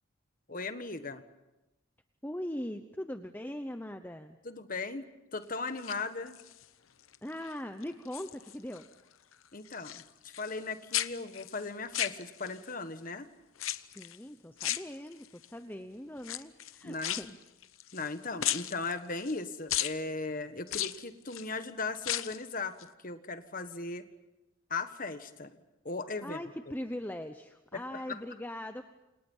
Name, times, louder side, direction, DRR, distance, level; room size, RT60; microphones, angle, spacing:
voice 1, 0.5-1.2 4.4-5.0 5.3-6.4 9.5-10.0 10.4-13.3 16.8-17.2 17.9-22.8 23.0-24.0 24.7-25.5 25.8-26.4 27.7-28.2, left 3 dB, 45° left, 9 dB, 1.6 m, -37 dB
voice 2, 2.2-4.4 7.2-8.9 13.9-17.4 26.2-28.8, left 1 dB, 10° left, 7 dB, 0.9 m, -40 dB
sound 1, 5.7-6.6 7.1-7.5 7.8-8.9 9.1-10.7 10.9-12.7 13.6-14.2 14.6-15.5 16.2-18.1 18.4-19.4 19.7-20.0 20.7-21.5 21.9-22.5 22.8-22.9, left 12 dB, 90° left, 0.9 m, -36 dB
29.5 x 27.5 x 5.6 m, 0.96 s
head